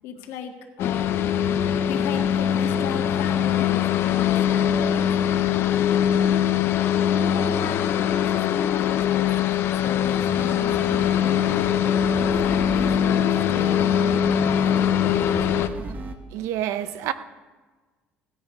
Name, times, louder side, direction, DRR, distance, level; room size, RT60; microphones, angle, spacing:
voice 1, 0.0-1.3 1.8-5.4 7.1-9.3 9.7-11.7 12.2-15.7, left 7 dB, 80° left, 1.8 m, -36 dB
sound 1, 0.8-15.7, left 9 dB, 60° left, 0.7 m, -22 dB
sound 2, 9.8-16.1, right 3 dB, 35° right, 1.3 m, -36 dB
voice 2, 16.3-17.1, right 12 dB, 80° right, 0.8 m, -28 dB
17.5 x 10.0 x 4.9 m
cardioid pair, 110°, 5 cm